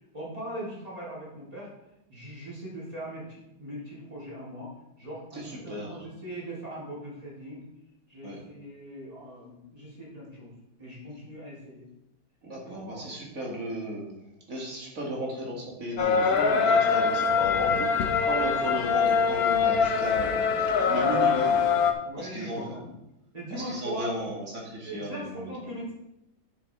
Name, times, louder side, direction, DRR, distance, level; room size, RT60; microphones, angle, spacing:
voice 1, 0.1-1.7 2.1-4.7 5.0-7.6 8.1-10.5 10.8-11.8 12.6-13.1 17.0-17.4 18.5-18.7 22.0-22.8 23.3-24.1 24.8-25.9, right 1 dB, 20° right, -8 dB, 3.7 m, -40 dB
voice 2, 5.3-6.0 8.2-8.4 12.4-14.1 14.5-17.8 18.2-21.6 22.2-22.8 23.5-25.7, right 1 dB, 45° right, -3 dB, 2.5 m, -35 dB
sound 1, 16.0-21.9, left 5 dB, 60° left, 1.1 m, -23 dB
9.1 x 7.3 x 3.6 m, 0.89 s
omnidirectional pair, 2.2 m